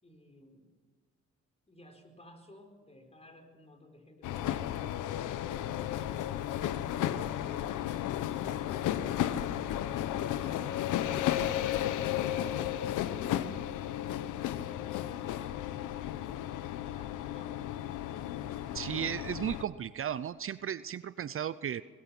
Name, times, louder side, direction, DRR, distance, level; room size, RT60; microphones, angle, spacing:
voice 1, 0.0-0.7 1.7-5.2 16.8-17.9, left 1 dB, 20° left, 4 dB, 4.8 m, -57 dB
sound 1, 4.2-19.6, left 11 dB, 85° left, 1.0 m, -34 dB
voice 2, 18.7-21.8, right 9 dB, 45° right, 15 dB, 0.6 m, -35 dB
24.0 x 20.0 x 6.0 m, 1.5 s
cardioid pair, 90°, 30 cm